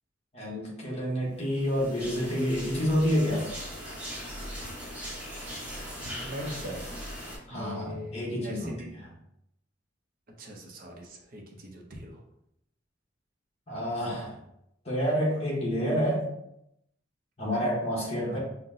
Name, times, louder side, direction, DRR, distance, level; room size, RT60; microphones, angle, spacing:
voice 1, 0.3-3.5 7.5-9.1 13.7-14.4 14.8-16.3 17.4-18.4, equal, 35° left, -4 dB, 1.1 m, -29 dB
sound 1, 1.5-7.4, equal, 10° right, 1.0 m, -39 dB
voice 2, 6.2-6.9 7.5-8.9 10.4-12.2 18.3-18.4, equal, 45° right, 1 dB, 0.6 m, -40 dB
5.4 x 2.1 x 2.6 m, 0.79 s
head